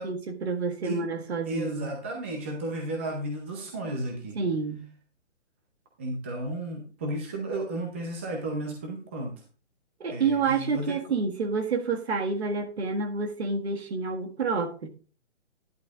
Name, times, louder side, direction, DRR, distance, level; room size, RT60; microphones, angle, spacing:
voice 1, 0.0-1.9 4.3-4.9 10.0-14.9, right 4 dB, 60° right, 1.8 m, -29 dB
voice 2, 1.5-4.4 6.0-9.3 10.1-11.0, right 1 dB, 10° right, 0.6 m, -33 dB
11.0 x 10.5 x 2.4 m
hypercardioid pair, 165°, 37 cm